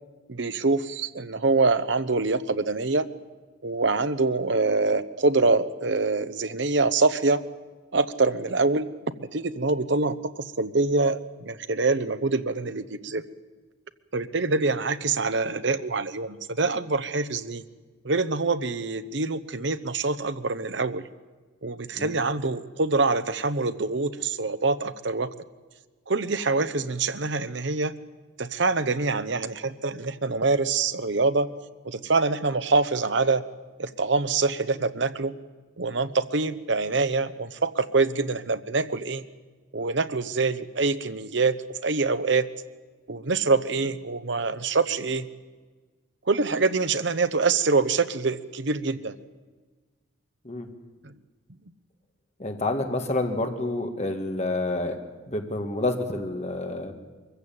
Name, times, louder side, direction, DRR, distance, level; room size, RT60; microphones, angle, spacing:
voice 1, 0.3-3.1 3.6-7.4 7.9-8.9 9.2-13.2 14.1-17.6 18.0-21.0 21.6-25.3 26.1-27.9 28.4-31.5 31.8-33.4 33.8-35.3 35.8-39.2 39.7-41.5 41.8-42.5 43.1-45.3 46.3-49.2, right 3 dB, 60° right, 12 dB, 0.9 m, -25 dB
voice 2, 52.4-55.0 55.3-56.9, left 2 dB, 35° left, 5 dB, 1.9 m, -28 dB
23.0 x 15.0 x 8.8 m, 1.4 s
head